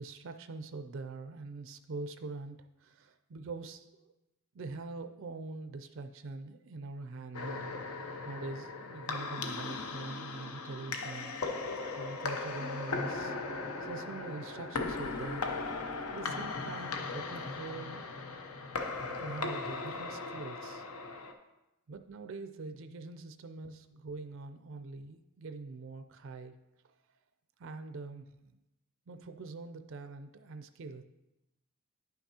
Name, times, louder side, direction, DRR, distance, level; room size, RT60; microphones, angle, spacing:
voice 1, 0.0-4.1 4.5-7.7 8.2-11.3 12.0-13.4 13.8-15.4 16.1-18.1 19.2-20.8 21.9-26.5 27.6-28.5 29.1-31.0, right 3 dB, 60° right, 8 dB, 0.4 m, -44 dB
sound 1, 7.3-21.3, left 3 dB, 85° left, 0.7 m, -38 dB
10.0 x 5.9 x 2.8 m, 0.95 s
head